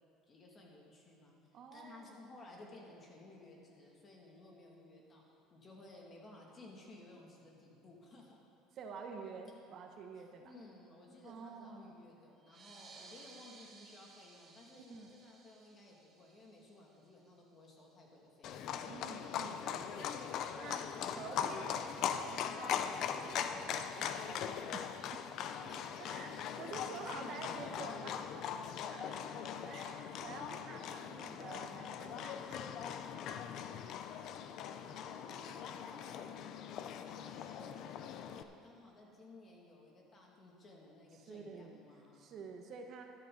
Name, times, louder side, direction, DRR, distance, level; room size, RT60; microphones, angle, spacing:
voice 1, 0.3-1.4 1.7-8.4 10.4-18.6 23.5-23.8 25.7-25.9 26.6-26.8 27.0-27.9 29.0-29.7 35.0-42.4, left 2 dB, 30° left, -1 dB, 2.2 m, -57 dB
voice 2, 1.5-2.2 8.7-10.5 11.2-12.0 14.9-15.1 18.9-20.8 21.1-21.7 21.9-22.8 23.1-29.1 29.6-32.6 41.1-41.8 42.1-43.0, right 5 dB, 45° right, 3 dB, 1.1 m, -49 dB
sound 1, 12.4-17.5, right 4 dB, 30° right, 2.0 m, -59 dB
Livestock farm animals working animals, 18.4-38.4, left 8 dB, 55° left, 0.6 m, -41 dB
13.0 x 12.0 x 3.9 m, 2.4 s
cardioid pair, 130°, 0 cm